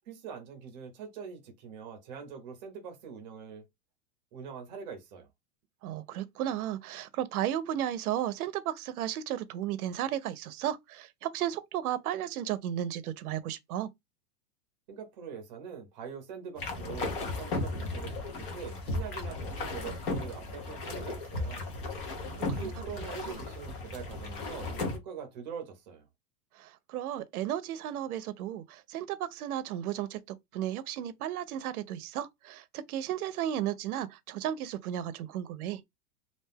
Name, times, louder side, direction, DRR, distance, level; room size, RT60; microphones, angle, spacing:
voice 1, 0.1-3.7 4.3-5.3 14.9-21.7 22.4-26.1, right 6 dB, 30° right, 0.8 m, -43 dB
voice 2, 5.8-13.9 22.2-22.7 23.3-23.4 26.5-35.8, right 11 dB, 75° right, 0.6 m, -34 dB
sound 1, 16.6-25.0, left 2 dB, 35° left, 0.7 m, -35 dB
2.5 x 2.2 x 3.3 m
supercardioid pair, 180°, 45 cm